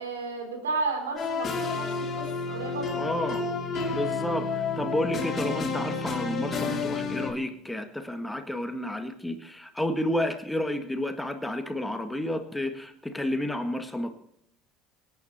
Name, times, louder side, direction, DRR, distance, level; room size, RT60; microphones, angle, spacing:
voice 1, 0.0-1.9 2.1-3.5 3.7-4.0, right 3 dB, 75° right, 3 dB, 3.4 m, -33 dB
sound 1, 1.2-7.3, left 4 dB, 35° left, 3.0 m, -30 dB
voice 2, 3.0-3.4 3.9-14.1, left 1 dB, 5° left, 8 dB, 1.6 m, -31 dB
24.5 x 9.5 x 4.4 m, 0.71 s
figure-of-eight pair, 60°, 0 cm